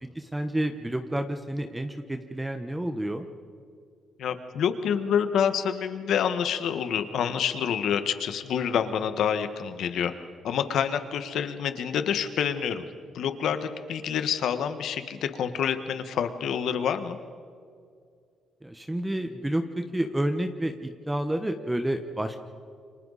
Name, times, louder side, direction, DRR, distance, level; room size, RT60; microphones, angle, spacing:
voice 1, 0.0-3.3 18.6-22.4, right 1 dB, 10° right, 7 dB, 1.2 m, -30 dB
voice 2, 4.2-10.1 10.4-12.8 13.1-17.2, left 8 dB, 75° left, 9 dB, 1.5 m, -27 dB
29.5 x 24.5 x 4.2 m, 2.2 s
cardioid pair, 90°, 0 cm